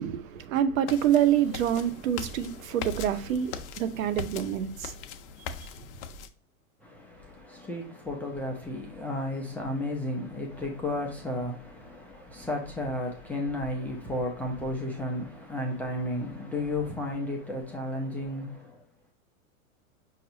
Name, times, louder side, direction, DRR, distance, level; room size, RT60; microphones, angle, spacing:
voice 1, 0.0-4.9, right 10 dB, 70° right, 0.7 m, -26 dB
sound 1, 0.9-6.3, left 5 dB, 55° left, 0.6 m, -40 dB
voice 2, 6.8-18.8, left 1 dB, 5° left, 0.4 m, -33 dB
5.6 x 2.6 x 2.6 m
hypercardioid pair, 115°, 42 cm